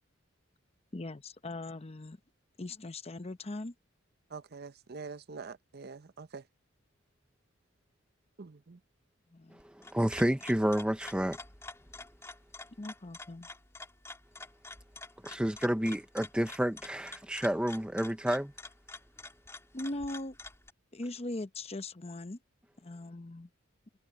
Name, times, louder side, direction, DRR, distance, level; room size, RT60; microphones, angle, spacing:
voice 1, 0.9-2.2 2.6-3.7 9.3-9.6 12.8-13.5 19.7-20.4 20.9-22.4 22.8-23.5, left 2 dB, 30° left, 0.8 m, -40 dB
voice 2, 4.3-6.4 8.4-8.8, right 4 dB, 50° right, 0.7 m, -45 dB
voice 3, 9.5-11.4 15.2-18.5, equal, 5° right, 0.6 m, -30 dB
sound 1, 9.6-20.7, left 2 dB, 15° left, 3.0 m, -48 dB
head